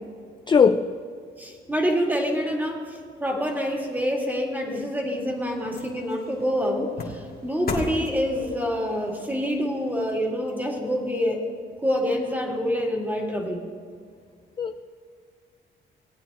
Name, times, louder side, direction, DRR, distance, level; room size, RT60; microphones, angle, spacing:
voice 1, 0.5-0.8 14.6-14.8, left 6 dB, 25° left, 9 dB, 0.4 m, -18 dB
voice 2, 1.4-11.5 11.8-13.6, equal, 10° right, 0 dB, 2.0 m, -26 dB
sound 1, 4.7-11.2 11.6-11.7, left 3 dB, 50° left, 1.7 m, -39 dB
19.0 x 8.9 x 3.0 m, 2.1 s
cardioid pair, 90°, 20 cm